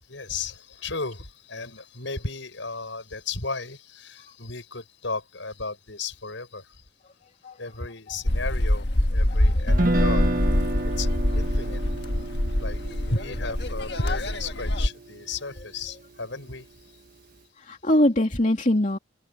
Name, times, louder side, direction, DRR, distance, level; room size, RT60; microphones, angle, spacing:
voice 1, 0.0-6.8 7.6-10.4 10.8-11.9 12.6-12.8 13.1-16.7, left 3 dB, 80° left, 6.2 m, -34 dB
sound 1, 8.2-14.9, left 1 dB, 60° left, 1.6 m, -24 dB
voice 2, 9.3-9.7 17.6-19.0, left 1 dB, 40° left, 2.8 m, -23 dB
Guitar, 9.7-15.8, right 1 dB, 45° right, 1.6 m, -30 dB
head